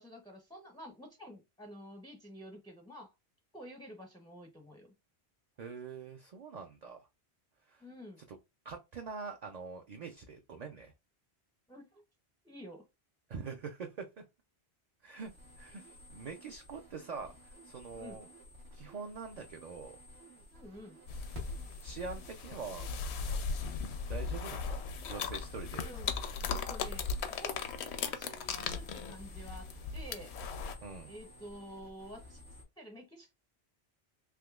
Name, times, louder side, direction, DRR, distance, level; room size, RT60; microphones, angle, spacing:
voice 1, 0.0-3.1 3.5-4.9 7.8-8.2 11.7-12.0 12.4-12.8 17.9-18.2 20.5-21.0 25.8-26.1 26.5-27.6 27.9-30.3 31.1-32.4 32.8-33.3, equal, 5° left, 1 dB, 0.4 m, -50 dB
voice 2, 5.6-7.1 7.7-7.8 8.3-8.4 8.6-10.9 13.3-14.2 15.0-15.3 15.6-18.3 18.7-20.0 21.8-22.9 24.1-25.9 30.8-31.1, right 5 dB, 55° right, 4 dB, 0.4 m, -44 dB
sound 1, 15.2-32.6, left 1 dB, 75° right, 1.3 m, -54 dB
sound 2, 21.1-30.8, left 5 dB, 80° left, 0.8 m, -38 dB
3.6 x 2.9 x 2.3 m, 0.24 s
omnidirectional pair, 1.1 m